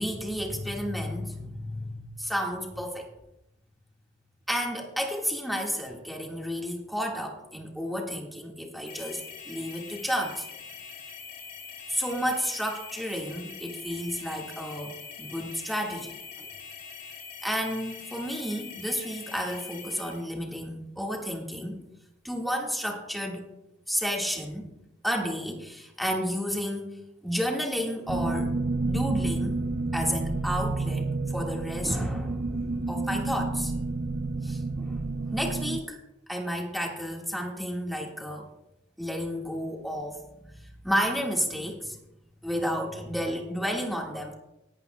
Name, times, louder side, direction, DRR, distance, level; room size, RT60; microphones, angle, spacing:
voice 1, 0.0-3.1 4.5-10.5 11.9-16.5 17.4-21.8 22.2-23.5 23.9-24.7 25.0-26.9 27.2-28.5 28.8-29.6 29.9-33.7 34.4-35.0 35.3-36.0 36.3-38.5 39.0-40.6 40.8-42.0 42.4-44.3, equal, ahead, 0 dB, 1.7 m, -31 dB
sound 1, 8.9-20.3, left 6 dB, 50° left, 3.0 m, -43 dB
sound 2, 28.1-35.8, right 3 dB, 45° right, 0.5 m, -30 dB
18.5 x 11.0 x 2.2 m, 0.88 s
head